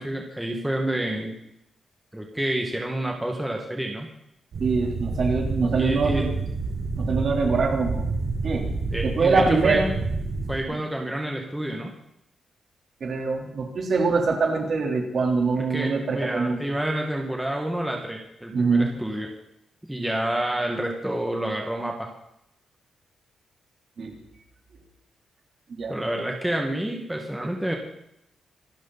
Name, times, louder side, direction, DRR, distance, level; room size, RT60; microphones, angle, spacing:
voice 1, 0.0-1.3 2.1-4.1 5.8-6.3 8.9-9.8 10.5-11.9 15.6-19.3 19.9-22.1 25.9-27.8, right 1 dB, 5° right, 1 dB, 2.0 m, -28 dB
sound 1, 4.5-10.6, right 3 dB, 60° right, 6.9 m, -29 dB
voice 2, 4.6-6.3 7.0-8.1 8.4-8.7 9.0-9.9 13.0-16.6 18.5-18.9 24.0-24.2 25.7-25.9, right 4 dB, 45° right, 1 dB, 3.8 m, -23 dB
26.0 x 13.0 x 4.3 m, 0.78 s
wide cardioid pair, 170°, 0 cm